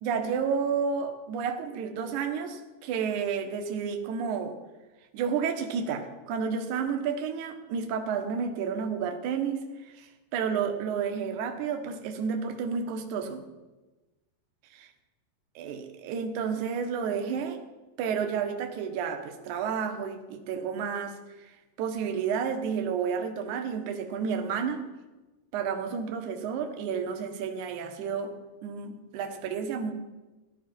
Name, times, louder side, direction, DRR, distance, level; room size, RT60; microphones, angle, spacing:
voice 1, 0.0-4.6 5.1-13.4 14.7-14.9 15.6-17.6 18.0-24.8 25.5-28.3 28.6-29.9, right 6 dB, 65° right, 5 dB, 2.3 m, -31 dB
17.0 x 11.5 x 4.4 m, 1.1 s
omnidirectional pair, 4.6 m